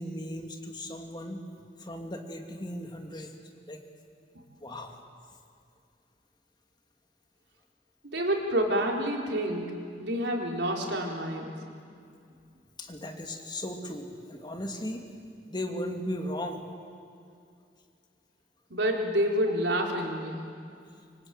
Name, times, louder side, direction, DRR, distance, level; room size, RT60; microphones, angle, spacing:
voice 1, 0.0-1.4 1.8-3.3 3.7-3.8 4.6-5.0 12.8-15.0 15.5-16.6, left 1 dB, 25° left, 3 dB, 2.5 m, -36 dB
voice 2, 8.1-11.5 18.7-20.4, equal, 90° right, 1 dB, 4.0 m, -28 dB
26.0 x 24.0 x 9.1 m, 2.4 s
head